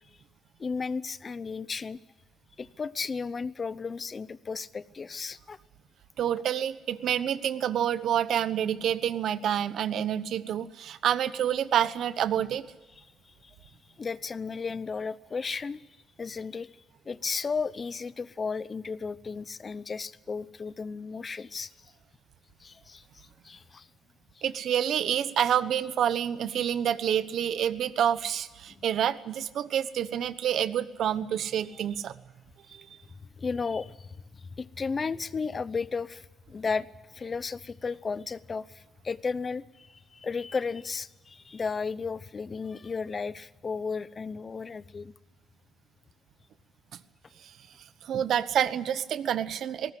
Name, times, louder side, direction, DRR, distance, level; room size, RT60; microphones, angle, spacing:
voice 1, 0.6-2.0 2.6-5.6 13.4-13.5 14.0-15.8 16.2-16.7 17.1-21.7 22.6-23.9 28.8-28.9 33.4-36.9 37.1-45.1, left 5 dB, 30° left, 17 dB, 0.8 m, -34 dB
voice 2, 6.2-12.7 24.4-32.2 32.7-32.9 48.0-49.9, right 9 dB, 70° right, 14 dB, 1.0 m, -28 dB
20.5 x 18.0 x 9.9 m, 1.1 s
cardioid pair, 120°, 0 cm